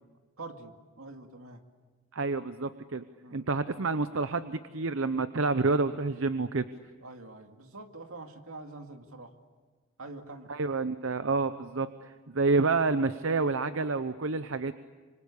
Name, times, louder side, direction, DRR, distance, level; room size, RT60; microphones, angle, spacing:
voice 1, 0.4-1.6 3.2-3.4 7.0-9.3 10.0-10.5, right 2 dB, 85° right, 5 dB, 2.3 m, -45 dB
voice 2, 2.1-3.0 3.3-6.7 10.5-14.7, right 3 dB, 70° right, 11 dB, 0.8 m, -28 dB
26.0 x 25.5 x 8.5 m, 1.4 s
head